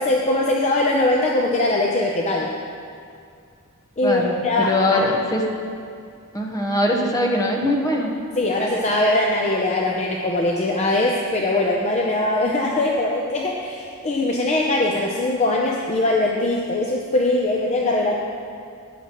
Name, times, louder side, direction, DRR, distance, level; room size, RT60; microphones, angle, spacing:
voice 1, 0.0-2.5 4.0-5.0 8.4-18.1, left 2 dB, 30° left, -1 dB, 0.7 m, -21 dB
voice 2, 4.0-5.4 6.3-8.1, left 1 dB, 15° left, 0 dB, 1.1 m, -22 dB
14.0 x 9.6 x 3.0 m, 2.3 s
head